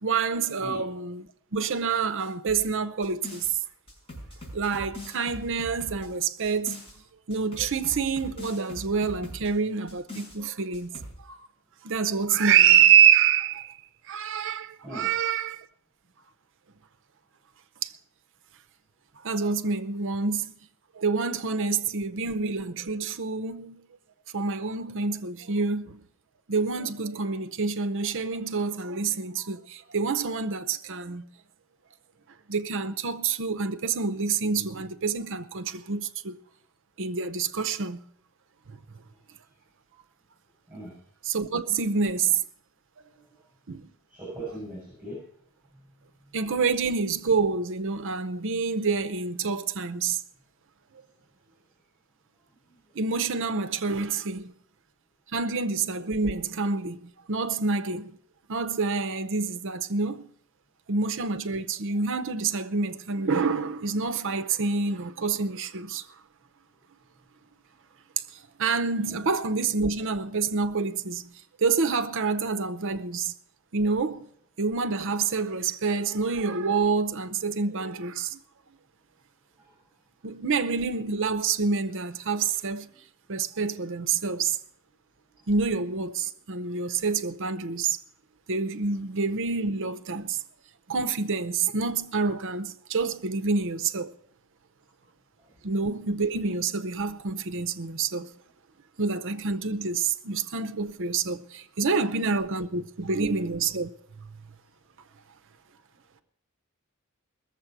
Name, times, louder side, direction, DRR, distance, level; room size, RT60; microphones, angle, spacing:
voice 1, 0.0-3.5 4.5-6.8 7.3-10.9 11.3-11.4 11.8-13.8 14.1-15.6 17.8-17.9 19.2-20.5 20.9-23.8 24.3-26.1 26.5-31.2 32.5-36.4 37.0-38.0 41.2-42.4 43.7-43.8 46.3-50.2 53.0-54.5 55.3-58.2 58.5-60.2 60.9-66.0 68.6-71.2 71.6-73.3 73.7-74.3 74.6-78.4 80.2-82.9 83.3-84.6 85.5-88.0 88.5-90.4 90.9-94.1 95.6-98.3 99.0-103.9 104.2-104.3, right 5 dB, 60° right, 0.7 m, -27 dB
sound 1, 2.5-3.5 3.9-6.9 7.3-9.5 9.9-10.4 10.7-11.2, left 1 dB, 25° left, 5.7 m, -42 dB
voice 2, 44.1-45.2 69.0-69.2, right 1 dB, 10° right, 6.9 m, -38 dB
19.5 x 7.4 x 6.0 m
head